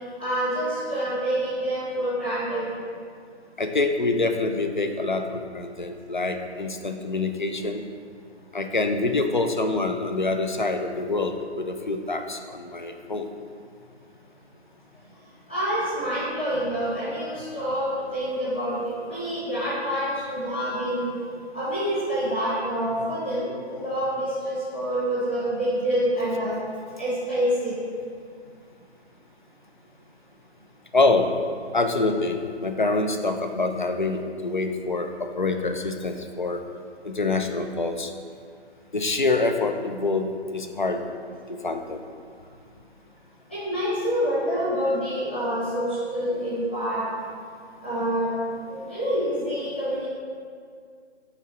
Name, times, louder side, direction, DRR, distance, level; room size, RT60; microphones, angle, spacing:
voice 1, 0.2-2.7 15.5-21.1 21.5-26.5 27.0-27.8 43.5-47.0 47.8-48.3 48.7-50.0, equal, 10° left, -13 dB, 1.0 m, -27 dB
voice 2, 3.6-7.9 8.5-13.3 30.9-31.3 31.7-36.6 37.0-38.1 38.9-41.0 41.5-42.0, left 3 dB, 45° left, 6 dB, 0.4 m, -26 dB
5.7 x 3.9 x 5.7 m, 2.2 s
hypercardioid pair, 180°, 34 cm